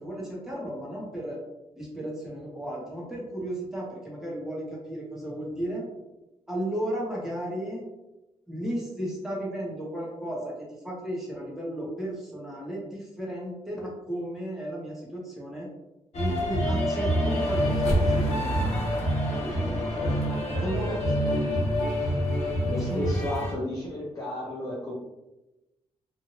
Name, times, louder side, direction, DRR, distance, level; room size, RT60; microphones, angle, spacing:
voice 1, 0.0-1.4 1.8-5.9 6.5-7.8 8.5-10.5 10.8-15.7 16.1-18.7 19.3-19.8 20.6-21.0 22.8-23.1, right 1 dB, 5° right, -5 dB, 0.9 m, -34 dB
sound 1, 16.1-23.5, equal, 75° left, 0.9 m, -26 dB
voice 2, 20.0-21.6 22.6-24.9, left 1 dB, 30° left, -6 dB, 0.6 m, -34 dB
2.9 x 2.5 x 2.8 m, 1.0 s
wide cardioid pair, 170°, 11 cm